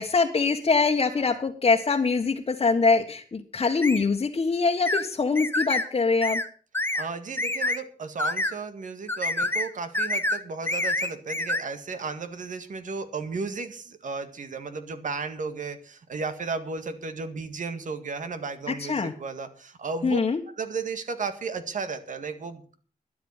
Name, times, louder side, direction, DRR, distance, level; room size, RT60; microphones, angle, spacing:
voice 1, 0.0-6.4 18.7-19.1 20.0-20.4, left 4 dB, 45° left, 0 dB, 1.4 m, -23 dB
sound 1, 3.8-4.0 4.9-5.0 5.4-5.9 6.2-6.5 6.7-7.1 7.4-7.8 8.2-8.5 9.1-9.7 9.9-10.4 10.7-11.6, left 1 dB, 15° left, 1.2 m, -27 dB
voice 2, 6.9-20.2 20.5-22.7, right 4 dB, 70° right, 9 dB, 1.9 m, -34 dB
12.5 x 9.5 x 7.2 m, 0.43 s
cardioid pair, 80°, 14 cm